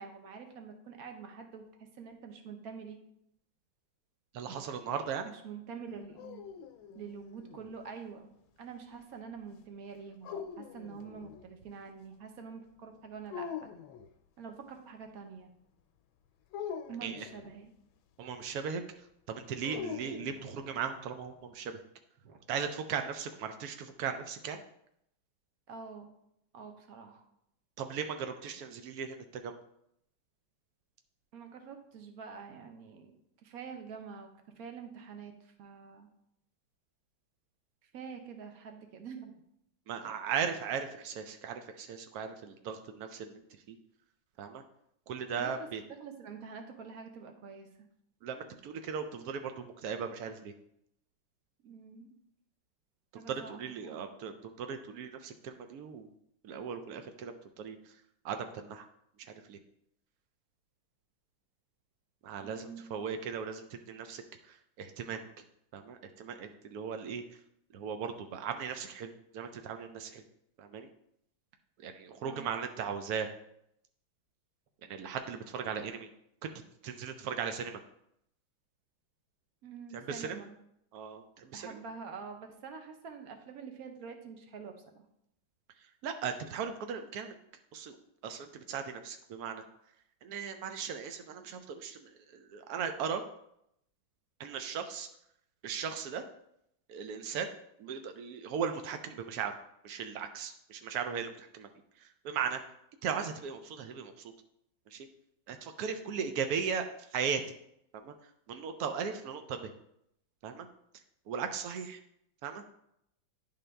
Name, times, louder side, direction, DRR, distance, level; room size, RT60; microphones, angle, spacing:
voice 1, 0.0-3.0 5.2-6.5 6.9-8.3 8.6-13.7 14.4-15.5 16.9-17.7 20.3-20.4 22.2-22.4 25.7-26.1 26.5-27.2 31.3-33.1 33.4-34.3 34.6-36.1 37.9-39.4 40.0-40.1 45.4-45.7 46.0-47.9 51.6-52.1 53.1-53.6 53.8-54.1 62.4-63.0 72.2-72.6 79.6-80.5 81.5-85.0, right 6 dB, 60° right, 5 dB, 1.1 m, -46 dB
voice 2, 4.3-5.3 17.0-17.3 18.2-21.8 22.5-24.6 27.8-29.6 39.9-43.8 44.4-44.6 45.1-45.8 48.2-50.5 53.1-56.1 56.4-58.0 58.2-58.9 59.2-59.6 62.2-65.3 65.7-67.4 67.7-70.2 70.6-70.9 71.8-73.3 74.8-76.1 76.4-76.5 76.8-77.8 79.9-80.4 80.9-81.8 85.8-87.3 87.7-87.9 88.2-89.6 90.2-93.2 94.4-95.1 95.6-96.2 96.9-97.5 97.8-99.6 99.8-101.7 102.0-102.6 103.0-104.3 104.9-105.1 105.5-107.4 107.9-109.7 110.4-110.7 111.3-112.0 112.4-112.6, right 6 dB, 85° right, 7 dB, 0.8 m, -38 dB
sound 1, 5.9-7.8 10.2-11.5 13.3-14.1 16.5-17.6 19.6-20.8, left 7 dB, 80° left, 1.3 m, -43 dB
10.5 x 3.8 x 3.3 m, 0.76 s
omnidirectional pair, 2.2 m